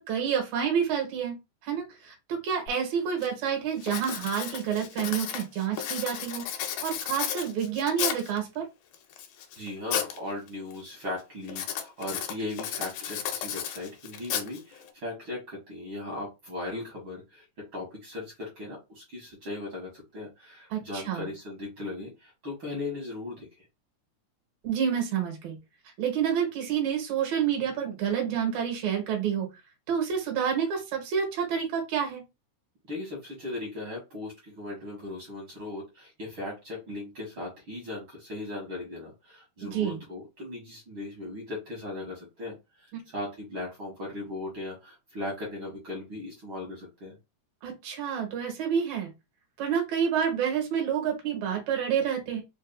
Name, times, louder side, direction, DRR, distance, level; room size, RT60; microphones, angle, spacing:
voice 1, 0.0-1.3 1.6-6.4 6.8-8.7 20.7-21.3 24.6-25.6 26.0-29.5 29.9-32.2 39.6-40.0 42.9-43.0 47.6-49.1 49.6-52.4, right 8 dB, 70° right, 2 dB, 2.5 m, -28 dB
Writing, 2.7-2.8 3.2-3.5 3.8-8.4 8.9-10.2 10.5-10.9 11.5-14.9, left 9 dB, 80° left, 1.9 m, -34 dB
voice 2, 9.6-17.5 17.7-23.7 32.9-47.2, left 2 dB, 50° right, -3 dB, 1.8 m, -38 dB
5.1 x 2.6 x 2.3 m, 0.24 s
omnidirectional pair, 3.4 m